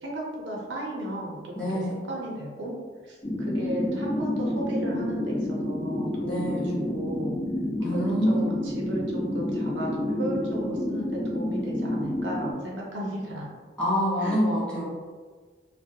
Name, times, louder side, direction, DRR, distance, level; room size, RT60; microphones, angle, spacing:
voice 1, 0.0-1.8 2.1-2.8 3.0-6.6 6.9-7.4 7.8-13.5 14.2-14.4, right 1 dB, 80° right, -2 dB, 0.5 m, -34 dB
voice 2, 1.5-2.0 6.3-6.8 7.8-8.5 13.8-14.8, equal, 5° left, -9 dB, 0.6 m, -26 dB
sound 1, 3.2-12.5, left 1 dB, 35° left, 0.8 m, -29 dB
2.3 x 2.0 x 2.7 m, 1.5 s
head